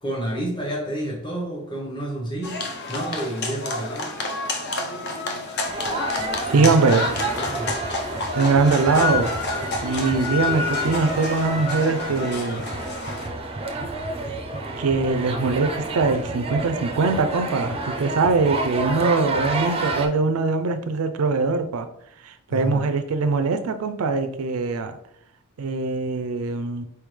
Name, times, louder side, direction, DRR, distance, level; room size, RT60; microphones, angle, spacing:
voice 1, 0.0-4.2 6.5-6.7 7.2-7.7 22.5-22.9, right 1 dB, 20° left, -3 dB, 1.0 m, -30 dB
sound 1, 2.4-13.3, left 3 dB, 50° left, 0.6 m, -29 dB
sound 2, 5.7-20.1, right 2 dB, 25° right, 0.4 m, -30 dB
voice 2, 6.5-7.1 8.4-9.3 9.8-12.6 14.8-21.9 22.2-25.0 25.6-26.8, right 4 dB, 90° right, 8 dB, 0.4 m, -22 dB
4.4 x 3.5 x 3.2 m, 0.73 s
head